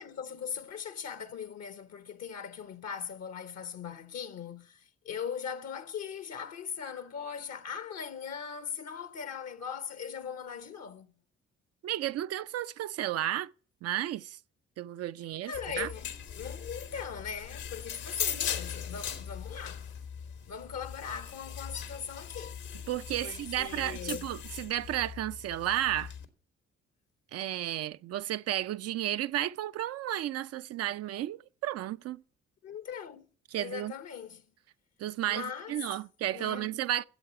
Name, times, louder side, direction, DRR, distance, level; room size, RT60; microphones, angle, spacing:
voice 1, 0.0-11.1 15.4-19.9 20.4-22.6 23.2-24.3 32.6-33.3 33.5-34.4 35.3-35.8 36.3-36.8, left 7 dB, 60° left, 0.9 m, -40 dB
voice 2, 11.8-13.5 13.8-14.4 14.8-15.9 22.9-26.1 27.3-32.2 33.5-33.9 35.0-37.0, right 12 dB, 55° right, 0.4 m, -33 dB
sound 1, 15.5-26.2, left 8 dB, 75° left, 1.5 m, -39 dB
12.0 x 7.8 x 5.9 m
hypercardioid pair, 45°, 30 cm